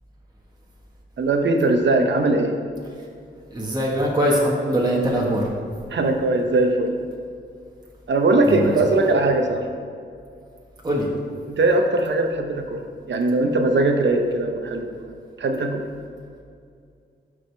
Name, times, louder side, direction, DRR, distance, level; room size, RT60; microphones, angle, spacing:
voice 1, 1.2-2.6 5.9-7.0 8.1-9.6 11.6-15.0 15.4-15.9, right 2 dB, 65° right, 4 dB, 0.9 m, -20 dB
voice 2, 3.5-5.5 8.5-8.7 10.8-11.1, equal, 20° right, -3 dB, 1.4 m, -22 dB
12.5 x 4.9 x 3.4 m, 2.3 s
cardioid pair, 75°, 20 cm